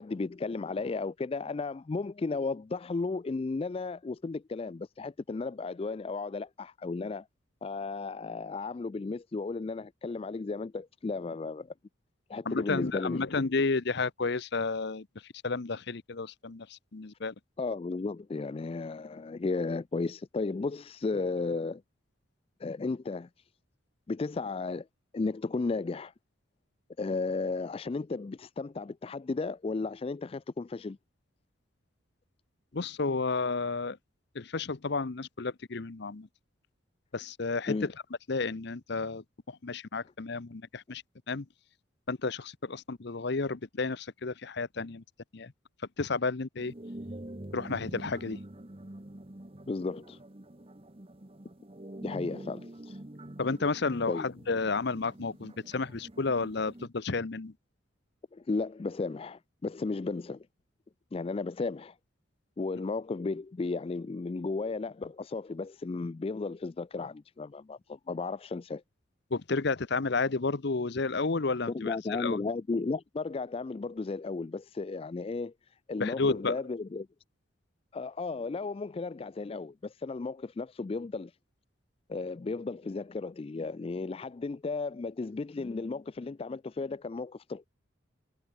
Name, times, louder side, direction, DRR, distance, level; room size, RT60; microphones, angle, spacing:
voice 1, 0.0-7.3 7.6-11.7 12.3-13.2 17.6-21.8 22.6-23.3 24.1-24.9 25.1-26.1 27.0-31.0 37.7-37.9 49.7-50.2 52.0-53.0 54.1-54.3 58.3-60.5 61.1-62.0 62.6-68.8 71.7-75.5 75.9-77.1 77.9-81.3 82.1-87.7, left 3 dB, 30° left, 0.3 m, -34 dB
voice 2, 12.5-15.1 15.4-17.3 32.7-34.0 34.3-36.3 37.1-37.8 38.3-41.0 41.3-41.5 42.1-45.0 45.3-45.5 46.0-46.7 47.5-48.4 53.4-57.5 69.3-72.4 76.0-76.6, left 4 dB, 55° left, 0.8 m, -31 dB
sound 1, 46.6-56.9, right 1 dB, 30° right, 1.2 m, -46 dB
head